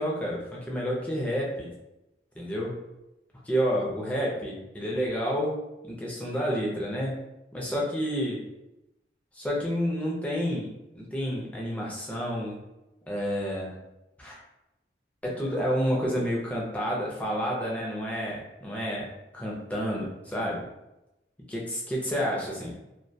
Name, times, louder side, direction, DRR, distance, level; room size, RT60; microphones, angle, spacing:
voice 1, 0.0-1.7 2.4-2.7 3.5-7.2 7.5-8.4 9.3-12.6 13.1-13.7 14.2-14.4 15.2-20.6 21.5-22.8, equal, 10° left, -4 dB, 0.4 m, -30 dB
2.2 x 2.2 x 2.6 m, 0.94 s
head